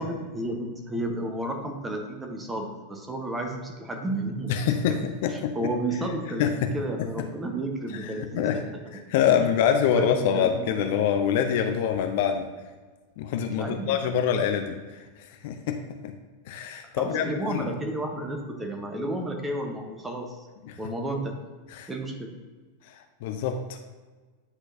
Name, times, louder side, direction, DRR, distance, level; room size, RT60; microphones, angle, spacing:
voice 1, 0.0-4.5 5.3-8.6 9.3-9.5 9.9-10.9 13.6-14.0 17.0-20.5 20.8-21.4 21.9-22.3, right 1 dB, 10° right, 2 dB, 1.0 m, -32 dB
voice 2, 4.5-5.7 6.4-6.7 8.0-8.6 8.9-12.5 13.2-16.1 16.5-17.7 20.7-20.8 21.8-21.9 22.9-23.8, left 8 dB, 50° left, 6 dB, 0.5 m, -26 dB
9.8 x 3.9 x 2.7 m, 1.3 s
figure-of-eight pair, 90°, 0 cm